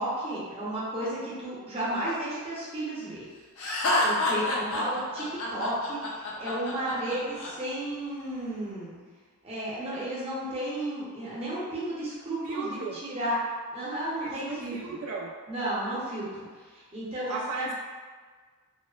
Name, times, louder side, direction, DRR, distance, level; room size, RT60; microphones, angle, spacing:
voice 1, 0.0-3.3 4.0-9.0 9.4-13.4 13.7-15.0 15.5-16.5 16.7-17.7, right 1 dB, 25° right, -8 dB, 0.7 m, -33 dB
Laughter, 3.6-7.5, left 2 dB, 65° left, 0.4 m, -28 dB
voice 2, 12.4-13.0 14.2-15.3 17.3-17.7, right 3 dB, 80° right, -2 dB, 0.4 m, -35 dB
2.8 x 2.0 x 2.3 m, 1.5 s
head